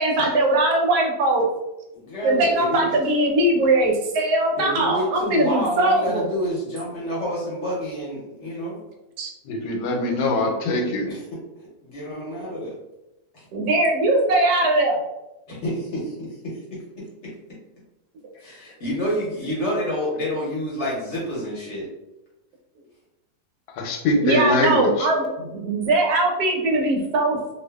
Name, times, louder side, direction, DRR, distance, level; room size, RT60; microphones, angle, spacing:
voice 1, 0.0-1.4 2.2-6.3 9.2-9.3 12.5-12.6 13.5-15.0 24.2-27.5, right 2 dB, 85° right, 1 dB, 1.2 m, -21 dB
voice 2, 1.9-2.8 4.5-8.8 11.1-11.2 11.8-12.7 13.3-13.4 15.5-16.6 18.4-21.9, equal, 55° left, -5 dB, 0.9 m, -28 dB
voice 3, 9.4-11.1 23.7-25.1, left 2 dB, 90° left, 2 dB, 1.1 m, -23 dB
2.6 x 2.3 x 2.2 m, 0.95 s
omnidirectional pair, 1.6 m